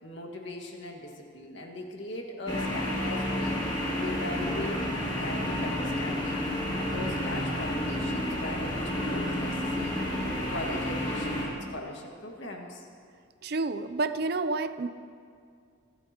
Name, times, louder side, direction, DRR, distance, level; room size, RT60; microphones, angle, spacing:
voice 1, 0.0-3.7 4.0-6.5 6.8-10.0 10.4-12.9, left 1 dB, 70° left, 1 dB, 1.8 m, -39 dB
sound 1, 2.5-11.5, left 1 dB, 25° left, 2.7 m, -30 dB
voice 2, 13.4-14.9, right 3 dB, 55° right, 12 dB, 0.5 m, -29 dB
25.0 x 12.0 x 2.9 m, 2.3 s
head